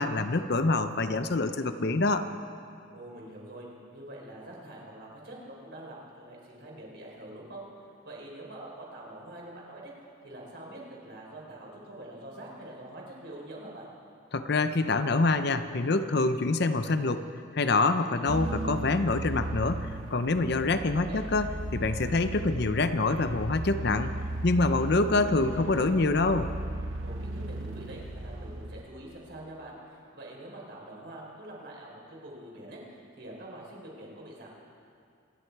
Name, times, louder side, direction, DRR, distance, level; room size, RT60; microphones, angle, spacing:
voice 1, 0.0-2.3 14.3-17.2 17.5-24.1 24.4-26.5, left 3 dB, 55° left, 10 dB, 0.7 m, -26 dB
voice 2, 2.9-3.7 3.9-7.7 8.0-9.9 10.2-13.9 20.9-21.2 27.0-34.5, right 1 dB, 55° right, -3 dB, 4.3 m, -45 dB
sound 1, 18.3-28.8, right 1 dB, 85° right, 1.0 m, -36 dB
26.5 x 11.0 x 4.7 m, 2.4 s
head